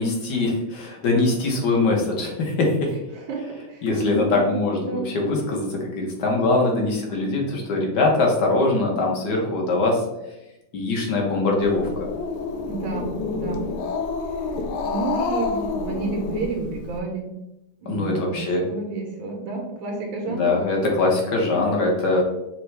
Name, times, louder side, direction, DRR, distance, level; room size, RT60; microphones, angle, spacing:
voice 1, 0.0-2.9 3.8-10.0 10.7-12.1 17.9-18.6 20.3-22.2, left 2 dB, 60° left, -1 dB, 1.4 m, -22 dB
voice 2, 3.1-4.6 4.9-5.1 12.6-13.8 14.8-17.3 17.8-20.6, right 4 dB, 75° right, 1 dB, 1.5 m, -30 dB
Growling, 11.6-17.0, left 4 dB, 90° left, 1.4 m, -28 dB
5.8 x 2.2 x 3.2 m, 0.92 s
omnidirectional pair, 2.2 m